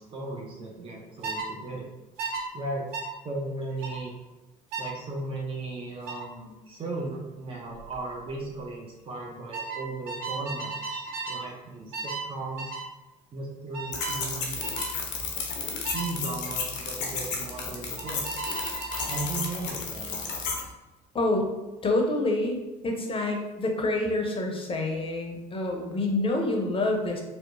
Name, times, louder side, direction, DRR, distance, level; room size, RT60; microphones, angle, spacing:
voice 1, 0.0-1.9 2.5-2.9 3.2-4.1 4.8-12.8 13.3-14.7 15.9-18.3 19.1-20.3, right 2 dB, 25° right, -2 dB, 0.6 m, -36 dB
sound 1, 1.2-1.5 2.2-2.4 2.9-3.1 3.8-4.0 4.7-5.0 6.1-6.3 7.7-8.0 8.3-8.6 9.5-11.5 11.9-12.3 12.6-12.9 13.7-14.2 14.6-14.9 15.8-16.1 18.0-19.3, right 4 dB, 65° right, 0.6 m, -35 dB
sound 2, 13.9-20.6, left 5 dB, 80° left, 0.6 m, -32 dB
voice 2, 21.1-21.5 21.8-27.2, left 2 dB, 25° left, 2 dB, 0.6 m, -27 dB
2.8 x 2.1 x 2.5 m, 1.1 s
hypercardioid pair, 60°, 21 cm